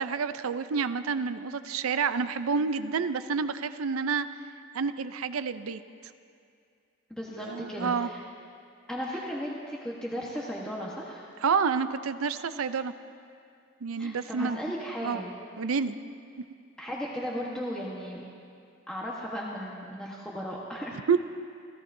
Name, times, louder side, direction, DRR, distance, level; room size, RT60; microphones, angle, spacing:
voice 1, 0.0-4.3 4.7-5.8 7.4-8.1 11.4-12.9 13.8-14.6 15.0-15.2 15.6-15.9 21.1-21.2, right 5 dB, 85° right, 12 dB, 0.5 m, -28 dB
voice 2, 7.1-8.2 8.9-11.2 14.0-15.4 16.8-18.2 18.9-21.0, equal, 5° left, -5 dB, 1.2 m, -36 dB
29.5 x 14.5 x 2.7 m, 2.4 s
head